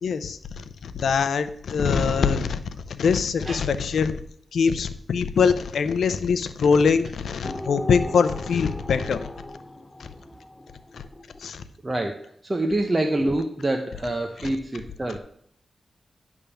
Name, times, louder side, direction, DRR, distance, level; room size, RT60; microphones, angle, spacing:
voice 1, 0.0-2.6 2.9-4.2 4.5-9.3 10.9-11.0 11.4-11.6, left 5 dB, 90° left, 12 dB, 0.6 m, -23 dB
sound 1, 7.4-11.5, left 1 dB, 20° left, 0.6 m, -38 dB
voice 2, 11.8-15.2, right 1 dB, 25° right, 4 dB, 0.8 m, -26 dB
10.0 x 3.6 x 6.9 m, 0.66 s
cardioid pair, 75°, 0 cm